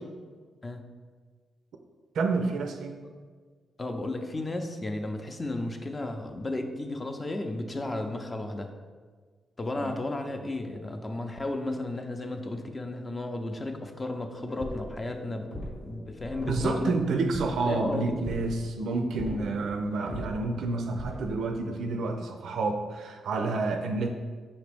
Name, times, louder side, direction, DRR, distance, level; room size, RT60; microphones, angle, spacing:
voice 1, 2.1-3.0 9.8-9.9 16.5-24.2, right 3 dB, 75° right, 5 dB, 0.3 m, -29 dB
voice 2, 3.8-8.7 9.6-15.5 15.8-16.9 17.6-18.4 19.3-19.5, left 2 dB, 30° left, 5 dB, 0.5 m, -34 dB
sound 1, 14.4-21.4, equal, 85° left, 1.4 m, -41 dB
5.2 x 2.8 x 3.4 m, 1.5 s
supercardioid pair, 55°, 0 cm